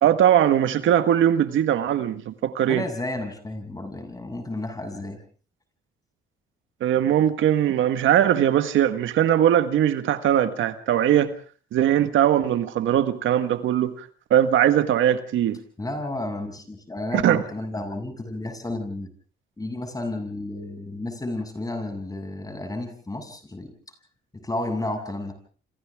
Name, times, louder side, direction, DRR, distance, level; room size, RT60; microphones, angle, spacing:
voice 1, 0.0-2.8 6.8-11.3 11.7-15.6 17.1-17.4, right 10 dB, 80° right, 1.7 m, -20 dB
voice 2, 2.7-5.2 15.8-19.1 19.6-23.7 24.4-25.3, left 2 dB, 20° left, 7.4 m, -32 dB
29.5 x 27.0 x 3.6 m
cardioid pair, 90°, 20 cm